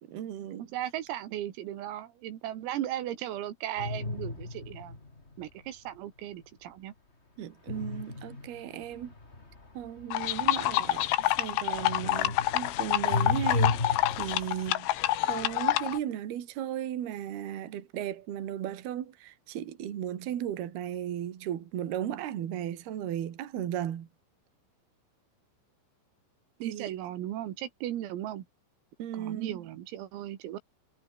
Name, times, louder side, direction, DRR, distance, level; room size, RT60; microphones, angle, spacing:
voice 1, 0.0-0.7 7.4-9.1 9.7-13.8 14.2-24.1 26.6-26.9 29.0-29.7, right 11 dB, 55° right, 3.8 m, -36 dB
voice 2, 0.6-5.0 5.4-6.9 26.6-28.4 29.1-30.6, right 12 dB, 85° right, 4.8 m, -36 dB
sound 1, 3.8-5.4 7.7-11.5 11.8-14.7, left 3 dB, 20° left, 2.2 m, -34 dB
sound 2, 10.1-16.0, left 16 dB, 85° left, 3.9 m, -27 dB
omnidirectional pair, 5.9 m